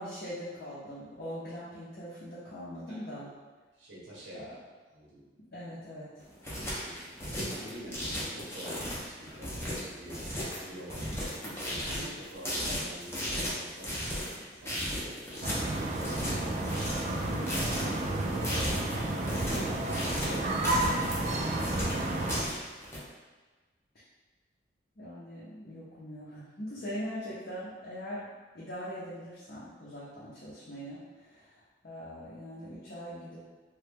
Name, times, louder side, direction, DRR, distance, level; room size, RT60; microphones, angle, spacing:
voice 1, 0.0-3.3 4.3-4.5 5.5-6.1 25.0-28.3 28.5-33.4, equal, 50° left, -10 dB, 0.6 m, -41 dB
voice 2, 2.9-3.3 3.8-4.5 4.9-5.2 6.5-9.6 9.8-21.8 26.8-26.9, right 1 dB, 90° right, -6 dB, 0.8 m, -47 dB
sound 1, 6.2-23.0, equal, 15° left, 0.6 m, -36 dB
sound 2, 15.4-22.4, right 2 dB, 40° right, 0.3 m, -31 dB
3.0 x 2.2 x 3.3 m, 1.3 s
head